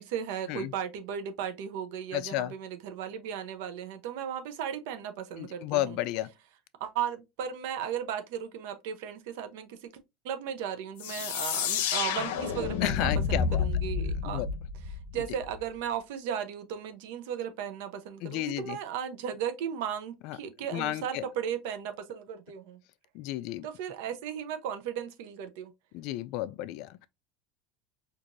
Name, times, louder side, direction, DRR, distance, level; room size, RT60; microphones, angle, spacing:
voice 1, 0.0-6.0 6.8-9.9 10.2-14.5 15.1-22.8 23.6-25.7, right 8 dB, 75° right, 0.7 m, -36 dB
voice 2, 2.1-2.5 5.4-6.3 12.8-13.7 14.2-14.5 15.1-15.2 18.2-18.8 20.2-20.4 20.7-21.3 23.1-23.7 25.9-27.1, left 15 dB, 55° left, 0.3 m, -32 dB
sound 1, 11.0-15.6, left 6 dB, 90° left, 0.6 m, -30 dB
4.6 x 2.5 x 2.5 m
cardioid pair, 155°, 0 cm